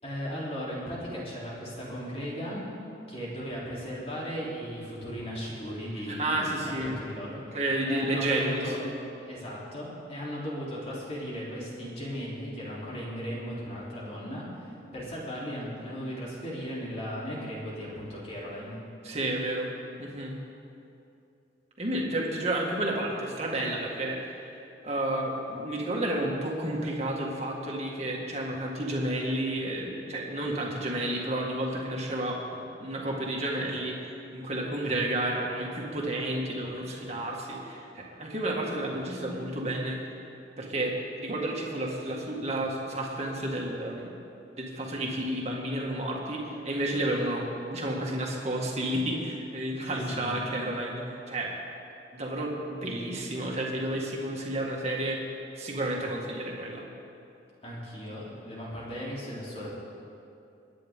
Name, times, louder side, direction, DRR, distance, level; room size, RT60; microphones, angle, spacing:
voice 1, 0.0-2.6 3.1-7.4 7.9-8.8 9.2-18.8 49.8-50.4 57.6-59.7, equal, 35° left, -6 dB, 3.4 m, -37 dB
voice 2, 6.1-7.0 7.5-8.6 19.0-19.7 20.0-20.3 21.8-24.6 24.8-40.0 40.6-44.1 44.6-51.5 52.1-55.2 55.6-56.8, right 1 dB, 35° right, -2 dB, 2.0 m, -31 dB
24.5 x 9.8 x 3.7 m, 2.7 s
head